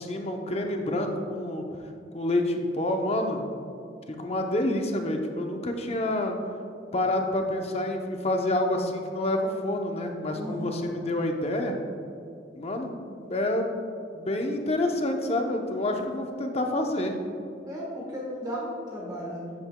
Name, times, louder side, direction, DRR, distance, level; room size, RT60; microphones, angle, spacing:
voice 1, 0.0-1.6 2.1-3.4 4.2-6.4 6.9-11.8 12.5-13.9 14.1-17.2, left 1 dB, 35° left, 3 dB, 0.7 m, -28 dB
voice 2, 10.3-10.9 17.6-19.5, equal, 20° right, -4 dB, 1.2 m, -35 dB
9.3 x 8.7 x 2.2 m, 2.5 s
head